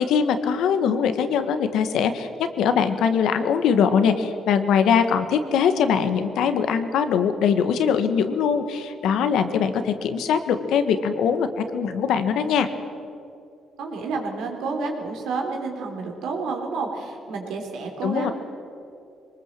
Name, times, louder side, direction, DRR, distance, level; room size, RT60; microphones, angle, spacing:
voice 1, 0.0-2.3 2.6-12.7 18.0-18.3, left 7 dB, 85° left, 9 dB, 1.6 m, -22 dB
voice 2, 13.8-18.3, right 4 dB, 85° right, 2 dB, 3.8 m, -30 dB
23.0 x 20.0 x 7.6 m, 2.6 s
cardioid pair, 90°, 0 cm